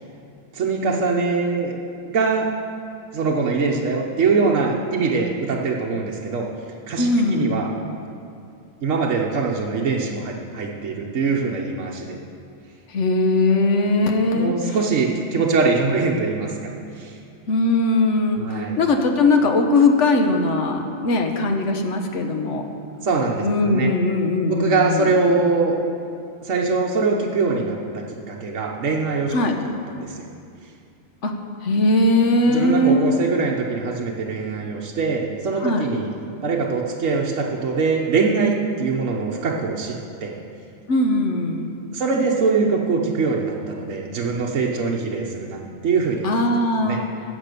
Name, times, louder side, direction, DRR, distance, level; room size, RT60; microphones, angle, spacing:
voice 1, 0.5-1.7 2.0-2.5 3.1-6.5 6.9-7.7 8.8-12.2 14.3-17.2 18.4-18.8 23.0-23.9 24.5-25.7 26.4-29.3 29.6-30.3 32.5-36.1 36.4-40.3 41.9-46.4 46.8-47.0, right 4 dB, 70° right, -2 dB, 1.3 m, -23 dB
voice 2, 7.0-7.6 12.9-14.5 17.5-22.7 23.4-25.1 29.3-29.6 31.2-31.3 31.6-33.1 35.6-35.8 40.9-41.7 46.2-47.1, left 2 dB, 65° left, 4 dB, 1.3 m, -20 dB
12.5 x 7.7 x 6.8 m, 2.5 s
omnidirectional pair, 1.3 m